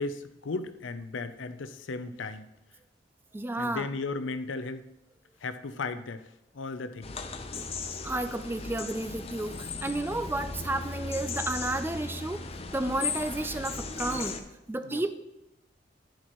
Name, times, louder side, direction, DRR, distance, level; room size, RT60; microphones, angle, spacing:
voice 1, 0.0-2.5 3.6-4.9 5.4-6.2 6.5-7.2 14.8-15.0, left 3 dB, 75° left, 12 dB, 0.6 m, -35 dB
voice 2, 3.3-3.9 7.5-7.7 8.0-12.5 12.7-14.4 14.7-15.1, right 2 dB, 10° right, 10 dB, 0.3 m, -32 dB
sound 1, 7.0-14.4, left 4 dB, 30° left, 0.6 m, -37 dB
10.5 x 9.9 x 3.0 m, 0.93 s
head